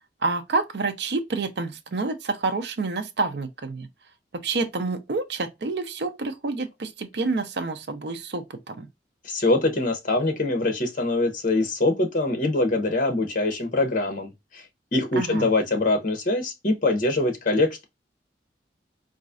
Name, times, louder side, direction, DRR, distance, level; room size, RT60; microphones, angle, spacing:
voice 1, 0.2-3.9 4.4-8.8 15.2-15.5, right 3 dB, 65° right, 0.5 m, -28 dB
voice 2, 9.2-14.6 14.9-17.8, left 2 dB, 50° left, 0.9 m, -23 dB
4.0 x 2.5 x 2.4 m
head